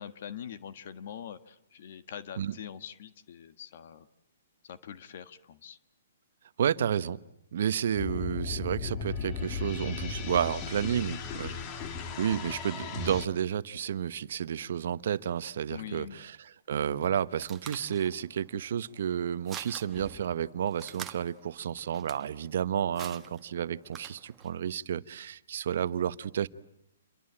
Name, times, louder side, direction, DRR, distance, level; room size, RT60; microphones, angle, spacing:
voice 1, 0.0-4.1 4.6-5.8 15.7-16.2, left 9 dB, 50° left, 12 dB, 1.4 m, -43 dB
voice 2, 6.6-7.2 7.5-11.6 12.2-16.3 16.7-26.5, right 9 dB, 60° right, 15 dB, 1.0 m, -31 dB
sound 1, 8.0-13.2, left 5 dB, 25° left, 2.2 m, -36 dB
sound 2, 17.0-24.6, right 8 dB, 15° right, 1.3 m, -48 dB
28.5 x 23.0 x 8.8 m, 0.77 s
hypercardioid pair, 160°, 0 cm